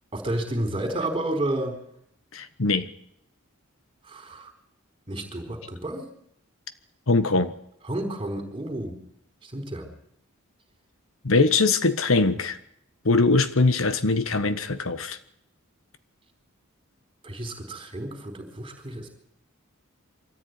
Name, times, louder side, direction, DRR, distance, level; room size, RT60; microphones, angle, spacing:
voice 1, 0.1-1.7 4.0-4.5 5.1-6.1 7.9-9.0 9.4-9.9 17.2-19.1, right 1 dB, 25° right, 6 dB, 4.4 m, -31 dB
voice 2, 2.3-2.9 7.1-7.5 11.2-12.6 13.0-15.2, left 3 dB, 70° left, 12 dB, 1.3 m, -22 dB
24.5 x 14.0 x 9.7 m, 0.73 s
head